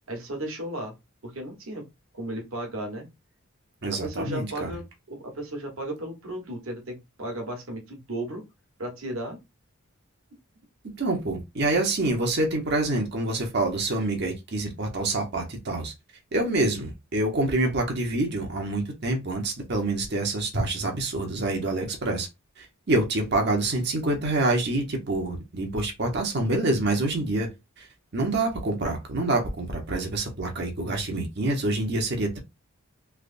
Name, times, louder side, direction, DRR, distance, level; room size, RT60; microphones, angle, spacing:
voice 1, 0.1-0.9 1.2-1.9 2.1-3.1 3.9-8.5 8.8-9.4, right 1 dB, 65° right, 1.3 m, -35 dB
voice 2, 3.8-4.7 10.9-15.9 16.3-22.3 22.6-27.5 27.8-27.9 28.1-32.4, right 2 dB, 50° right, 0.9 m, -26 dB
3.4 x 3.0 x 2.5 m
head